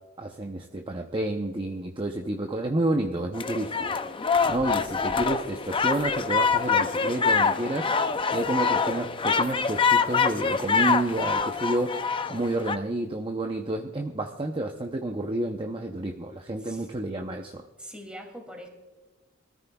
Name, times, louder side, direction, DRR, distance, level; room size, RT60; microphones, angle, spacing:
voice 1, 0.2-4.0 4.5-7.9 8.3-17.6, right 2 dB, 25° right, 3 dB, 0.7 m, -30 dB
sound 1, 3.3-12.8, left 5 dB, 25° left, 0.5 m, -25 dB
voice 2, 17.8-18.7, equal, 5° right, 2 dB, 2.6 m, -42 dB
23.5 x 14.0 x 2.3 m, 1.2 s
head